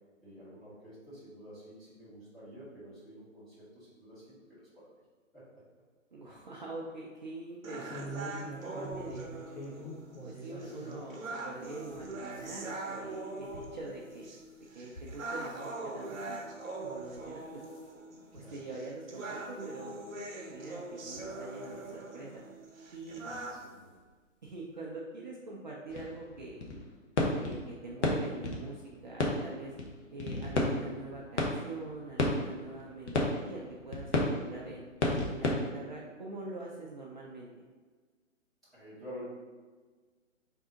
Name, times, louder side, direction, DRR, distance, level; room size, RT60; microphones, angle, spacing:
voice 1, 0.2-4.7 5.3-5.4 18.3-18.5 23.2-23.9 38.7-39.3, equal, ahead, -14 dB, 0.6 m, -49 dB
voice 2, 6.1-9.2 10.2-14.3 14.7-16.5 16.8-17.6 18.3-20.0 20.4-22.4 22.9-23.2 24.4-26.6 27.3-29.7 30.1-34.8 35.2-37.5, right 2 dB, 40° right, -3 dB, 0.4 m, -44 dB
sound 1, 7.6-23.6, right 2 dB, 80° right, 0.8 m, -42 dB
sound 2, 7.8-11.1 11.5-15.7 16.1-16.4 17.0-17.3 17.6-17.9 18.5-18.6 18.9-19.0 20.2-20.3 21.0-21.9 23.0-23.2 23.6-23.7 24.0-24.1, equal, 30° left, 0.9 m, -46 dB
sound 3, 25.9-26.9 27.2-35.7, left 2 dB, 60° left, 0.9 m, -32 dB
3.5 x 2.6 x 3.7 m, 1.4 s
figure-of-eight pair, 135°, 39 cm